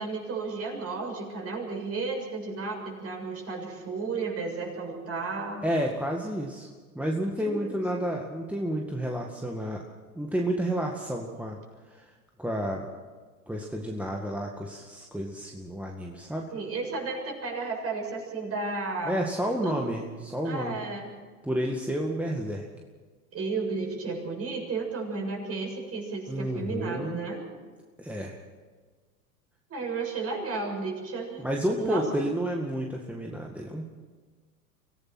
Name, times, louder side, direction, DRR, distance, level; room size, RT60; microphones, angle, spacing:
voice 1, 0.0-5.6 7.4-7.8 16.5-19.2 19.6-19.8 20.4-21.1 23.3-27.4 29.7-31.4 31.8-32.1, right 4 dB, 30° right, 1 dB, 7.3 m, -33 dB
voice 2, 5.6-6.7 7.0-9.8 10.2-11.6 11.9-12.1 12.4-12.9 13.5-16.5 19.0-20.8 21.4-22.7 26.3-27.2 28.0-28.4 31.4-33.9, equal, 5° right, 0 dB, 1.9 m, -30 dB
24.5 x 17.0 x 6.2 m, 1.4 s
hypercardioid pair, 100°, 44 cm